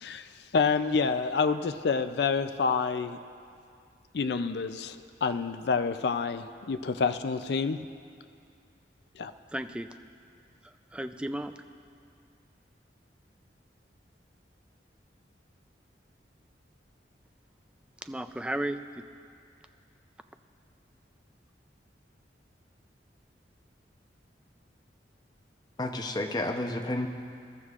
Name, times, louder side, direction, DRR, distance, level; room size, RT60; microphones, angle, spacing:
voice 1, 0.0-3.2 4.1-7.8 9.2-9.3, left 5 dB, 65° left, 10 dB, 0.4 m, -28 dB
voice 2, 9.5-9.9 10.6-11.6 18.0-19.1, right 1 dB, 5° right, 9 dB, 0.3 m, -34 dB
voice 3, 25.8-27.1, left 1 dB, 25° left, 4 dB, 0.7 m, -31 dB
23.0 x 12.5 x 2.4 m, 2.3 s
head